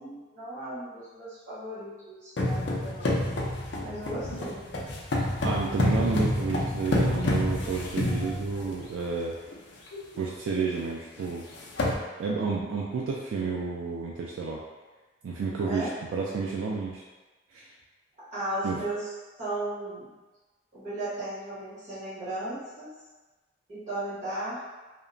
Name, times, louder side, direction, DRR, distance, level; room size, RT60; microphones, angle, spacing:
voice 1, 0.0-3.1 3.8-4.8 15.6-15.9 18.3-19.1 19.4-20.1 20.7-22.9 23.7-24.7, right 1 dB, 40° right, -14 dB, 1.3 m, -35 dB
sound 1, 2.4-8.9 9.5-9.6 9.9-10.2 10.5-10.6 11.3-11.4 11.6-12.0, left 1 dB, 65° left, 0.5 m, -28 dB
voice 2, 5.4-9.4 10.2-11.5 12.2-14.6 15.2-17.0 17.5-17.6 18.6-18.8, right 4 dB, 90° right, -3 dB, 0.3 m, -31 dB
2.8 x 2.1 x 2.5 m, 1.2 s
head